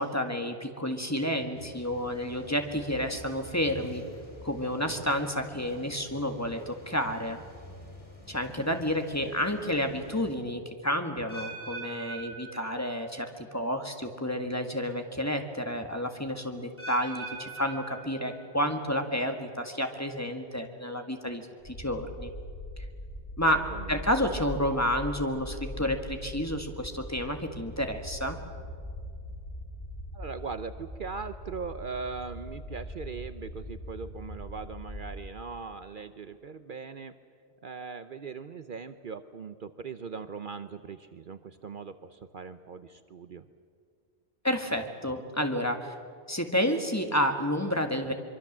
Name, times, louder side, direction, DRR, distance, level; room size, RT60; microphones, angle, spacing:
voice 1, 0.0-4.0 4.4-7.4 8.3-22.3 23.4-28.4 44.4-45.9 46.3-48.1, equal, 15° left, 5 dB, 1.7 m, -30 dB
sound 1, 1.5-10.4, left 1 dB, 30° left, 3.5 m, -49 dB
voice 2, 9.2-9.8 23.5-24.1 30.1-37.1 37.6-43.5, right 5 dB, 55° right, 11 dB, 0.9 m, -40 dB
sound 2, 11.3-13.3 13.6-14.0 14.7-14.8 16.8-18.7 19.0-19.5 20.1-20.2, right 3 dB, 10° right, 6.8 m, -42 dB
sound 3, 21.6-35.1, equal, 65° left, 5.2 m, -41 dB
24.0 x 24.0 x 7.4 m, 2.2 s
omnidirectional pair, 1.1 m